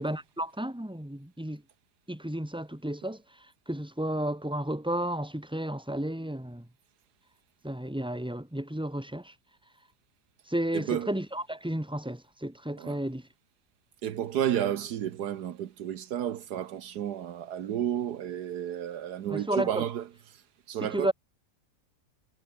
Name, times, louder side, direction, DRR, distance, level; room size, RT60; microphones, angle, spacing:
voice 1, 0.0-1.6 2.1-3.2 3.7-6.7 7.6-9.3 10.5-13.3 19.3-19.9 20.8-21.1, right 1 dB, 5° right, 3.0 m, -32 dB
voice 2, 10.7-11.1 12.8-13.0 14.0-20.0 20.7-21.1, right 10 dB, 75° right, 1.5 m, -31 dB
omnidirectional pair, 1.7 m